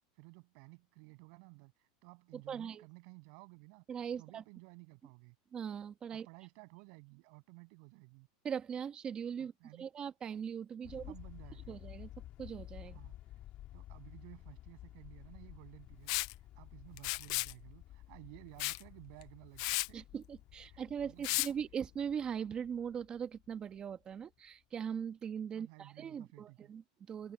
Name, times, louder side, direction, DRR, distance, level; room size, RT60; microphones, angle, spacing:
voice 1, 0.2-3.8 4.2-5.4 6.1-8.3 9.4-9.9 11.1-11.8 12.9-13.4 13.7-16.2 16.6-20.0 20.7-21.6 25.5-26.7, right 40 dB or more, 55° right, 7.5 m, -56 dB
voice 2, 2.3-2.8 3.9-4.4 5.5-6.3 8.4-9.5 9.8-11.1 11.7-13.0 19.9-27.3, right 7 dB, 25° right, 1.3 m, -40 dB
sound 1, 10.8-24.1, left 13 dB, 40° left, 3.4 m, -53 dB
Liquid, 16.1-16.3 17.0-17.5 18.6-18.8 19.2-19.3 19.6-19.9 21.2-21.5, left 25 dB, 60° left, 0.3 m, -34 dB
open air
supercardioid pair, 140°, 4 cm